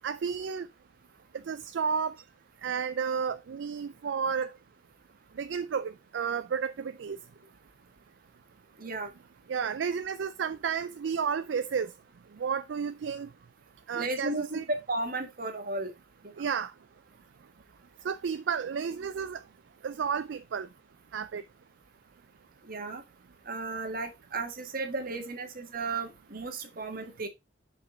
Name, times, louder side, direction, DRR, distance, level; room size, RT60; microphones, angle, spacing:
voice 1, 0.0-0.7 1.5-2.2 2.6-4.5 5.4-7.2 9.5-11.9 12.4-13.3 13.9-14.6 16.4-16.7 18.0-19.4 19.8-20.7 21.1-21.4, right 6 dB, 70° right, 0.4 m, -32 dB
voice 2, 8.8-9.1 13.9-15.9 22.6-23.0 23.4-27.3, right 2 dB, 50° right, 1.6 m, -34 dB
7.5 x 5.1 x 3.8 m
head